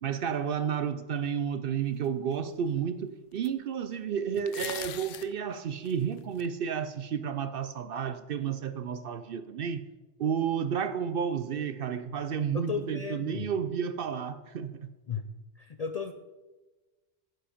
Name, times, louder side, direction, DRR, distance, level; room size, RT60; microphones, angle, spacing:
voice 1, 0.0-9.8 10.2-14.9, right 7 dB, 60° right, 0.6 m, -31 dB
sound 1, 2.3-2.4 3.4-3.5 4.4-5.3 5.9-6.5, left 11 dB, 85° left, 0.9 m, -40 dB
voice 2, 12.5-13.5 15.1-16.1, left 5 dB, 55° left, 0.4 m, -35 dB
10.5 x 7.7 x 5.0 m
omnidirectional pair, 1.2 m